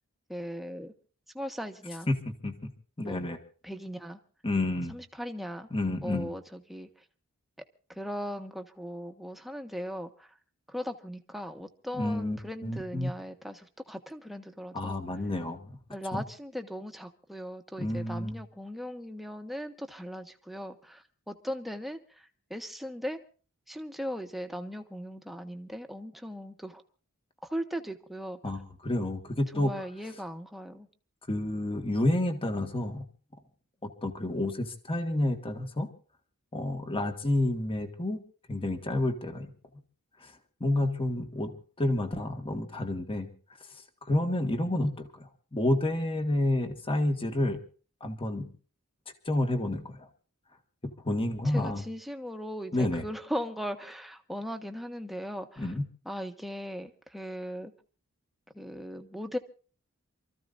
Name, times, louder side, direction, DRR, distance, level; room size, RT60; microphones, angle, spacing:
voice 1, 0.3-0.9 1.3-2.1 3.0-3.2 3.6-4.2 4.9-5.7 6.0-6.9 7.9-10.3 10.7-15.0 15.9-23.2 23.7-26.8 27.4-28.4 29.5-30.9 51.4-55.7 56.0-57.7 58.5-59.4, equal, ahead, 5 dB, 1.3 m, -38 dB
voice 2, 2.1-2.7 3.0-3.4 4.4-4.9 5.7-6.3 12.0-13.1 14.7-15.8 16.1-16.2 17.8-18.4 28.4-29.7 31.3-33.0 33.8-35.9 36.5-38.2 38.5-39.5 40.2-43.3 43.7-47.6 48.0-48.5 49.2-50.1 50.8-51.8 52.7-53.0 55.6-55.8, left 1 dB, 25° left, 5 dB, 1.7 m, -30 dB
28.5 x 14.5 x 2.6 m, 0.39 s
head